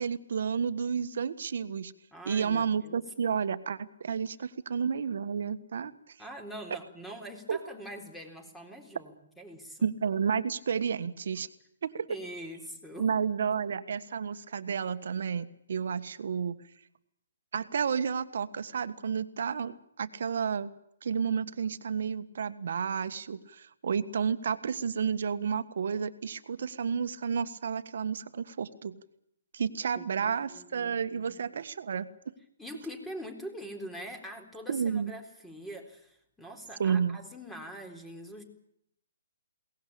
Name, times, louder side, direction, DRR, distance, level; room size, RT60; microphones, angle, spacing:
voice 1, 0.0-1.9 2.2-6.2 7.5-7.6 9.8-11.5 11.8-12.1 13.0-16.6 17.5-20.7 21.0-29.0 29.5-32.3 34.7-35.1 36.8-37.2, right 6 dB, 65° right, 12 dB, 1.5 m, -31 dB
voice 2, 2.1-3.0 6.2-9.9 12.1-13.1 30.0-31.4 32.6-38.4, equal, 5° left, 4 dB, 3.9 m, -44 dB
22.0 x 19.0 x 8.6 m, 0.76 s
hypercardioid pair, 140°, 0 cm